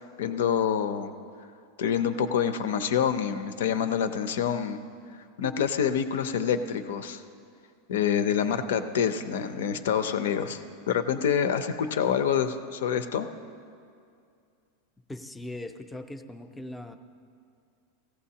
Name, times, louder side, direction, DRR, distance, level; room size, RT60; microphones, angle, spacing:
voice 1, 0.2-1.1 1.8-4.8 5.4-7.2 7.9-10.6 10.9-13.3, left 8 dB, 85° left, 10 dB, 0.6 m, -26 dB
voice 2, 15.1-17.0, left 1 dB, 5° left, 7 dB, 0.4 m, -40 dB
17.0 x 15.0 x 2.8 m, 2.3 s
supercardioid pair, 175°, 0 cm